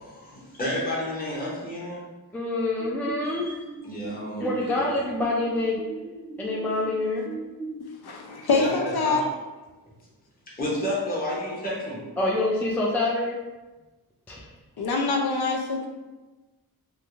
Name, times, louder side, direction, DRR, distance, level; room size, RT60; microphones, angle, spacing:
voice 1, 0.0-2.1 3.2-3.5 3.8-4.8 8.3-9.3 10.5-12.0, left 1 dB, 25° left, -6 dB, 0.8 m, -31 dB
voice 2, 2.3-3.5 4.4-5.8 6.4-7.3 12.2-13.4 14.3-14.5, left 2 dB, 5° left, -4 dB, 0.3 m, -26 dB
sound 1, 2.8-7.8, right 3 dB, 40° right, 0.6 m, -39 dB
voice 3, 8.0-9.2 14.8-15.9, left 4 dB, 80° left, 1 dB, 0.6 m, -25 dB
3.2 x 2.5 x 2.4 m, 1.2 s
wide cardioid pair, 110°, 38 cm